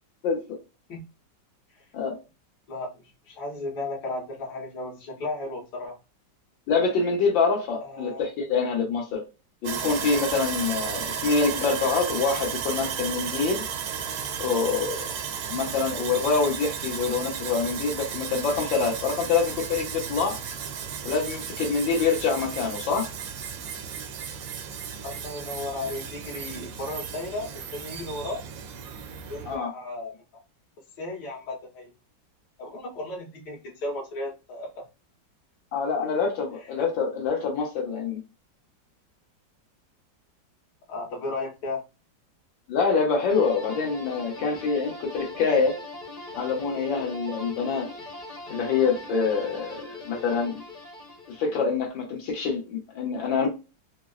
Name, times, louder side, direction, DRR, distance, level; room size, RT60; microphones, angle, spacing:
voice 1, 0.2-0.6 1.9-2.2 6.7-9.2 9.6-13.6 14.4-15.1 15.5-20.4 21.1-23.1 29.5-29.7 35.7-38.2 42.7-45.8 46.4-47.9 48.5-50.6 51.4-53.5, left 5 dB, 85° left, -1 dB, 1.7 m, -25 dB
voice 2, 2.7-6.0 7.8-8.3 25.0-28.4 29.3-30.2 31.0-31.9 32.6-34.8 36.8-36.9 40.9-41.8, left 2 dB, 65° left, -2 dB, 1.6 m, -35 dB
Sawing, 9.6-29.6, right 7 dB, 90° right, 1.3 m, -34 dB
sound 1, 43.3-51.6, left 2 dB, 35° left, 0.7 m, -41 dB
4.6 x 2.0 x 2.3 m, 0.28 s
omnidirectional pair, 2.0 m